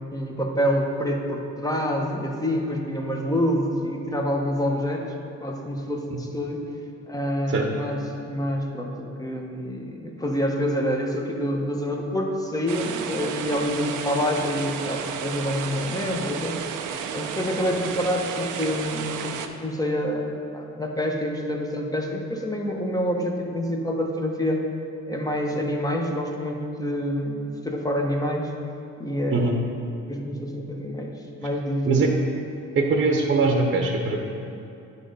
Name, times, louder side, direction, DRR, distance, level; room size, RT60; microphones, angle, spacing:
voice 1, 0.1-6.6 7.1-16.6 17.1-24.6 25.1-28.5 29.0-29.4 30.1-32.2, equal, 10° left, 1 dB, 1.0 m, -27 dB
sound 1, 12.7-19.5, right 7 dB, 85° right, 0.6 m, -32 dB
voice 2, 32.7-34.2, right 3 dB, 40° right, 1 dB, 1.0 m, -21 dB
9.9 x 3.8 x 5.4 m, 2.8 s
cardioid pair, 90°, 30 cm